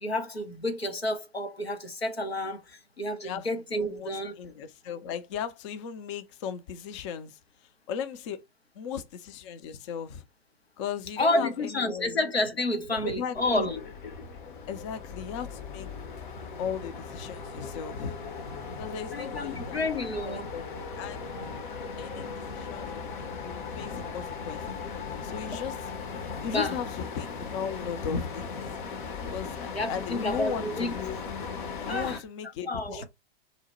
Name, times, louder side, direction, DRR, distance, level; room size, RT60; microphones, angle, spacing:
voice 1, 0.0-4.3 11.2-13.8 19.1-20.5 25.5-25.6 26.5-26.8 29.7-30.9 31.9-32.2 32.7-33.0, left 1 dB, 85° left, 0.8 m, -30 dB
voice 2, 3.7-8.4 8.7-10.2 10.8-12.2 13.0-13.8 14.7-15.9 16.6-18.2 18.7-20.7 21.0-21.3 22.0-25.9 26.4-28.6 29.3-31.2 31.9-33.0, left 7 dB, 30° left, 0.4 m, -37 dB
sound 1, 13.3-32.2, left 5 dB, 55° left, 0.8 m, -38 dB
2.9 x 2.1 x 4.1 m
figure-of-eight pair, 100°, 30 cm